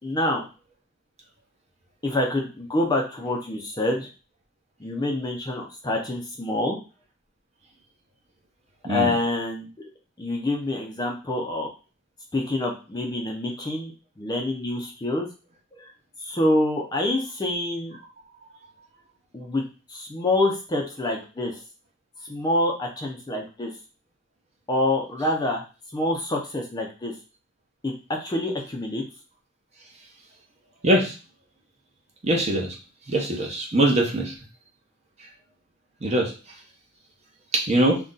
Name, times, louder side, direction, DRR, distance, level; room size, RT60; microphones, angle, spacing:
voice 1, 0.0-0.4 2.0-4.1 4.8-6.8 8.9-9.9 10.2-11.7 12.3-15.3 15.7-15.9 16.2-18.0 19.3-19.6 19.9-21.6 22.3-23.7 24.7-25.6 25.9-27.1 27.8-27.9 28.2-29.0, left 1 dB, 20° left, 0 dB, 0.4 m, -26 dB
voice 2, 30.8-31.1 32.2-32.7 33.1-34.3 36.0-36.3 37.5-38.0, right 1 dB, 30° right, -1 dB, 0.7 m, -22 dB
2.5 x 2.2 x 3.7 m, 0.33 s
head